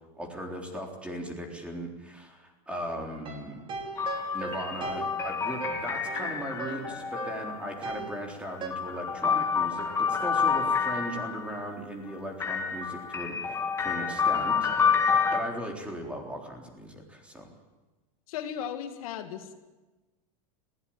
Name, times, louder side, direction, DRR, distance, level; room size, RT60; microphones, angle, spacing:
voice 1, 0.2-3.6 4.3-15.0 15.3-17.5, equal, 5° right, 2 dB, 3.7 m, -38 dB
sound 1, 3.1-8.7, right 4 dB, 30° right, 3.5 m, -39 dB
sound 2, 4.0-7.8 8.5-11.6 12.4-15.4, left 6 dB, 15° left, 2.1 m, -28 dB
voice 2, 18.3-19.5, left 9 dB, 75° left, 6 dB, 2.4 m, -36 dB
20.5 x 17.0 x 9.0 m, 1.2 s
supercardioid pair, 150°, 18 cm